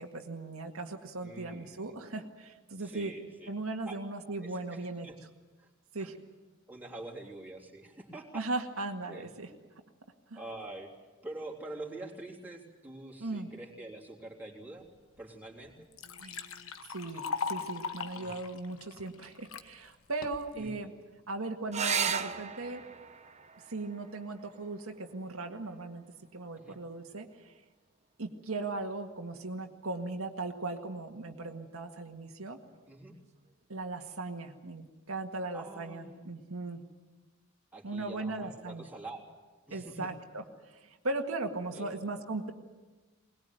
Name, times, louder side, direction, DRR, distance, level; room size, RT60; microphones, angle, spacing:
voice 1, 0.0-3.1 3.5-5.1 5.9-6.2 8.3-9.5 10.3-10.4 13.2-13.5 16.2-16.4 16.9-20.9 21.3-22.8 23.7-26.0 26.3-27.5 28.2-32.6 33.7-36.8 37.8-38.9 39.7-40.4 40.8-42.5, right 2 dB, 90° right, 3 dB, 1.9 m, -38 dB
voice 2, 1.2-1.9 2.8-3.5 3.8-4.0 4.4-5.2 5.6-5.7 6.0-6.1 6.7-8.4 9.1-9.3 10.3-10.9 11.2-14.9 15.2-15.9 18.1-18.4 20.5-21.0 26.6-26.8 32.9-33.1 35.5-36.3 37.7-39.3 39.7-40.1 41.7-41.9, right 2 dB, 10° right, -3 dB, 3.4 m, -45 dB
Liquid, 15.2-15.3 15.6-19.7 20.2-20.7, left 5 dB, 75° left, 1.3 m, -39 dB
sound 1, 21.7-26.7 28.6-29.3 32.7-32.8 33.1-33.2, right 7 dB, 35° right, 0.9 m, -37 dB
21.5 x 20.5 x 9.2 m, 1.2 s
head